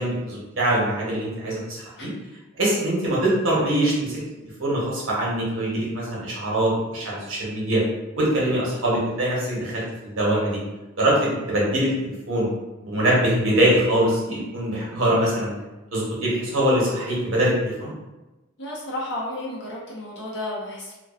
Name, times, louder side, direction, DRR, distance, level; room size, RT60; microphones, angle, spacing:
voice 1, 0.0-2.1 2.6-7.8 8.1-10.6 11.0-12.5 12.8-15.5 15.9-17.9, right 1 dB, 80° right, -5 dB, 0.8 m, -23 dB
voice 2, 18.6-20.9, left 1 dB, 60° left, -6 dB, 0.8 m, -32 dB
2.3 x 2.2 x 2.3 m, 1.1 s
head